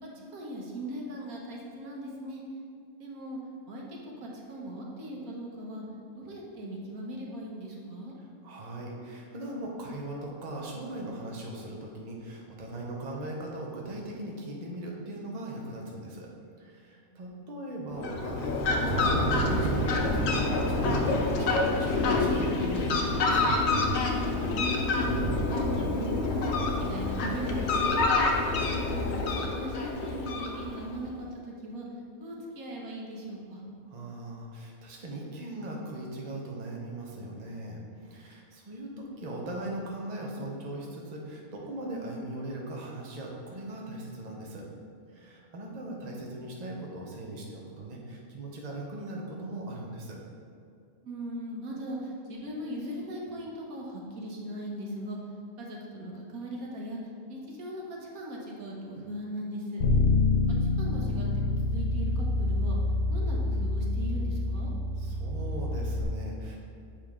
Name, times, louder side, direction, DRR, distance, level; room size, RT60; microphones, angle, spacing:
voice 1, 0.0-2.4 3.0-3.4 3.7-5.8 6.2-8.1 16.9-17.2 24.3-25.1 25.4-26.5 26.8-28.0 28.6-31.9 32.2-33.6 45.2-45.4 51.0-55.2 55.6-57.0 57.3-59.8 60.6-62.8 63.1-64.7, right 1 dB, 80° right, -2 dB, 1.5 m, -39 dB
voice 2, 8.2-16.3 16.6-23.7 33.9-44.6 45.1-50.2 65.0-66.6, right 1 dB, 35° right, -2 dB, 0.9 m, -39 dB
Fowl, 17.9-31.0, left 3 dB, 60° left, 0.9 m, -27 dB
Thunder, 18.3-27.7, right 4 dB, 60° right, 0.6 m, -35 dB
Bass guitar, 59.8-66.0, left 3 dB, 75° left, 1.6 m, -27 dB
7.3 x 5.0 x 3.6 m, 2.4 s
omnidirectional pair, 1.5 m